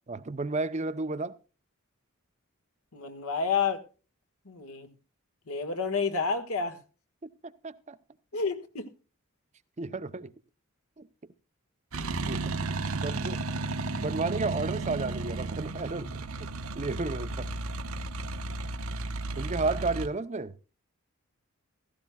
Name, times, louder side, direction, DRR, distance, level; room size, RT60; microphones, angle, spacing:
voice 1, 0.1-1.3 7.4-8.0 9.8-10.3 11.0-11.1 12.3-12.5 12.9-13.4 13.9-16.1 16.4-16.5 16.8-17.5 19.3-20.6, right 3 dB, 30° right, 0.6 m, -32 dB
voice 2, 2.9-3.8 4.5-4.9 5.5-6.8 8.3-8.9, left 5 dB, 80° left, 1.6 m, -30 dB
sound 1, 11.9-20.1, right 2 dB, 75° right, 1.0 m, -33 dB
16.0 x 14.5 x 2.3 m
head